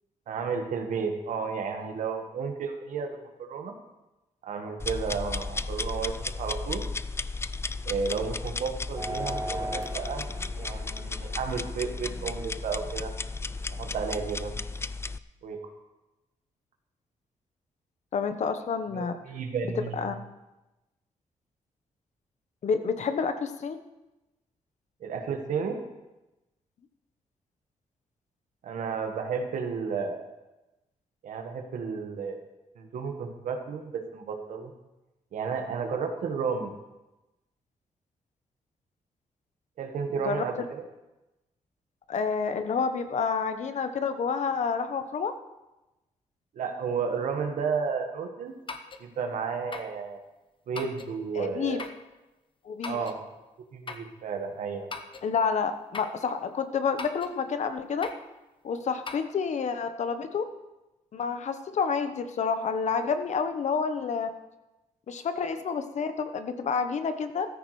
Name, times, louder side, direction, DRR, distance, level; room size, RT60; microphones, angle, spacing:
voice 1, 0.3-3.7 4.4-6.8 7.8-10.2 10.6-13.1 13.7-14.5 15.4-15.6 19.0-20.1 25.0-25.8 28.6-30.3 31.2-32.4 32.8-34.7 35.3-36.7 39.8-40.8 46.5-48.6 49.0-50.2 50.7-51.9 52.8-53.2 53.7-54.9, right 5 dB, 80° right, 5 dB, 1.5 m, -32 dB
sound 1, 4.8-15.2, left 3 dB, 20° left, 0.4 m, -34 dB
sound 2, 9.0-14.1, right 1 dB, 25° right, 2.5 m, -40 dB
voice 2, 18.1-19.1 19.8-20.1 22.6-23.8 40.2-40.4 42.1-45.3 51.3-51.8 52.6-53.0 55.2-58.1 58.6-60.4 61.1-64.3 65.1-67.5, left 5 dB, 65° left, 8 dB, 1.1 m, -29 dB
sound 3, 48.7-49.1 49.7-50.0 50.7-51.1 51.8-52.1 52.8-53.2 53.9-54.1 54.9-55.3 55.9-56.2 57.0-57.4 58.0-58.3 59.0-59.2, left 4 dB, 40° left, 1.1 m, -39 dB
14.5 x 13.5 x 3.3 m, 1.0 s
cardioid pair, 70°, 13 cm